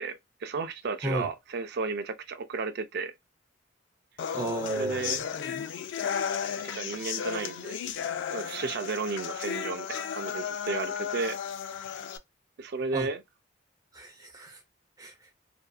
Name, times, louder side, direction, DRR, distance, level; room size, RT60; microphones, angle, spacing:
voice 1, 0.0-3.1 4.7-5.2 6.6-7.8 8.3-11.4 12.6-13.2, right 4 dB, 60° right, 0.4 m, -33 dB
sound 1, 4.2-12.2, left 7 dB, 65° left, 0.3 m, -34 dB
voice 2, 4.3-5.2 12.9-13.1 13.9-14.6 15.0-15.1, right 1 dB, 20° right, 0.7 m, -33 dB
2.6 x 2.4 x 2.3 m
head